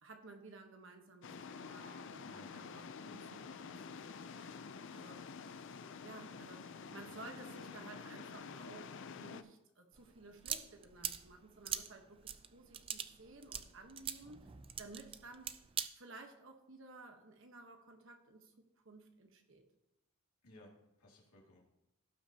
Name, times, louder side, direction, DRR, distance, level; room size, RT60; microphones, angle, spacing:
voice 1, 0.0-5.2 6.0-14.5 14.8-15.5 16.0-18.5 18.8-19.6, right 3 dB, 60° right, 4 dB, 1.2 m, -55 dB
sound 1, 1.2-9.4, left 5 dB, 55° left, 0.5 m, -49 dB
voice 2, 2.2-2.5 6.9-7.3 20.4-21.6, left 1 dB, 80° left, -2 dB, 2.4 m, -59 dB
sound 2, 10.0-15.9, right 9 dB, 25° right, 0.3 m, -43 dB
16.5 x 5.9 x 2.9 m, 0.88 s
head